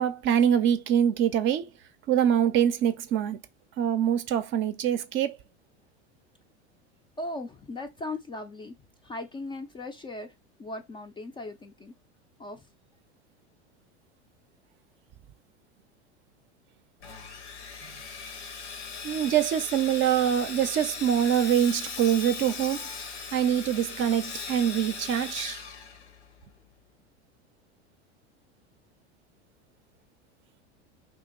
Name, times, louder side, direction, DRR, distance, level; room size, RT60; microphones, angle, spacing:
voice 1, 0.0-1.7 2.1-3.4 3.8-5.4 19.0-22.8 23.3-25.6, right 9 dB, 35° right, 0.5 m, -24 dB
voice 2, 7.2-8.7 9.0-10.3 10.6-11.9 12.4-12.7, left 2 dB, 15° left, 0.4 m, -38 dB
Sawing, 17.0-26.5, left 5 dB, 85° left, 0.8 m, -39 dB
2.8 x 2.7 x 3.8 m
hypercardioid pair, 85°, 34 cm